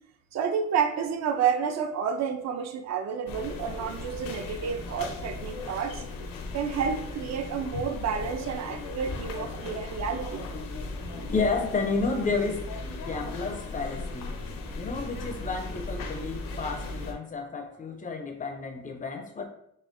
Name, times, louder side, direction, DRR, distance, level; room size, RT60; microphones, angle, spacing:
voice 1, 0.3-6.0 6.5-10.4, right 7 dB, 55° right, 8 dB, 0.5 m, -30 dB
sound 1, 3.3-17.1, left 2 dB, 85° left, 0.6 m, -37 dB
voice 2, 11.3-12.7 13.1-14.4 14.7-19.4, left 4 dB, 25° left, 5 dB, 0.4 m, -31 dB
4.2 x 3.2 x 2.5 m, 0.73 s
wide cardioid pair, 175°, 33 cm